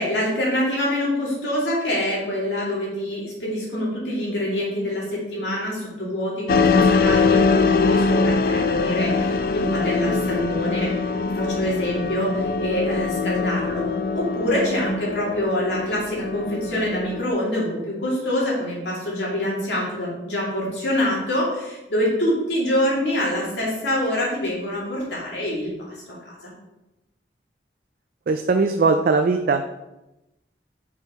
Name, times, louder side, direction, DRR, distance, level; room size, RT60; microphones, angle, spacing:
voice 1, 0.0-10.9 11.3-25.7 26.1-26.2 26.4-26.5, left 1 dB, 85° left, -5 dB, 2.4 m, -25 dB
sound 1, 6.5-17.3, left 4 dB, 55° left, 0.3 m, -22 dB
voice 2, 28.3-29.7, right 4 dB, 55° right, 6 dB, 0.3 m, -20 dB
5.6 x 4.6 x 4.3 m, 0.98 s
head